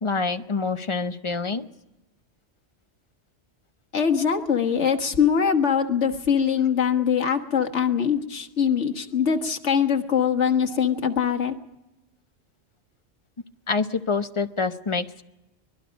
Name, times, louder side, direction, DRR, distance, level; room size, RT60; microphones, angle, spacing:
voice 1, 0.0-1.7 7.1-7.2 13.7-15.2, left 4 dB, 30° left, 9 dB, 0.7 m, -26 dB
voice 2, 3.9-11.5, left 7 dB, 80° left, 6 dB, 1.7 m, -22 dB
24.5 x 20.0 x 5.2 m, 0.97 s
omnidirectional pair, 1.2 m